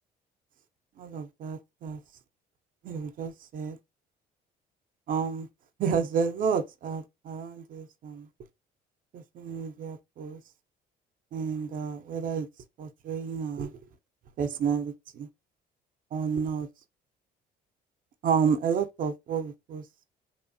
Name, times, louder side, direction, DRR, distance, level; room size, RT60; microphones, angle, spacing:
voice 1, 1.0-2.0 2.8-3.8 5.1-5.5 5.8-8.3 9.1-10.4 11.3-12.5 12.8-13.7 14.4-15.3 16.1-16.7 18.2-19.8, right 6 dB, 55° right, 0.5 m, -30 dB
2.9 x 2.0 x 2.7 m
cardioid pair, 110°, 17 cm